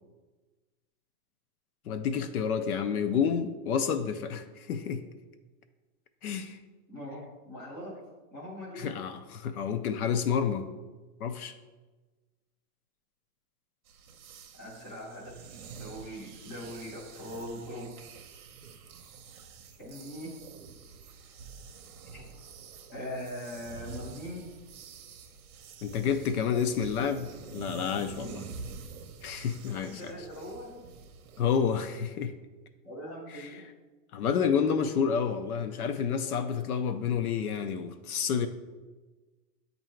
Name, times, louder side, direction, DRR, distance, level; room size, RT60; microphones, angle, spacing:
voice 1, 1.9-5.0 6.2-6.6 8.8-10.7 11.2-11.5 25.8-28.5 29.2-30.2 31.4-32.3 33.3-33.5 34.1-38.5, left 7 dB, 65° left, 9 dB, 0.6 m, -29 dB
voice 2, 6.9-8.0 8.3-8.9 14.5-17.9 19.8-20.3 22.1-22.3 22.9-24.5 30.0-30.7 32.8-33.6, equal, 15° left, -6 dB, 0.5 m, -41 dB
sound 1, 13.9-31.4, right 5 dB, 60° right, 0.7 m, -47 dB
8.0 x 2.7 x 4.4 m, 1.3 s
supercardioid pair, 180°, 48 cm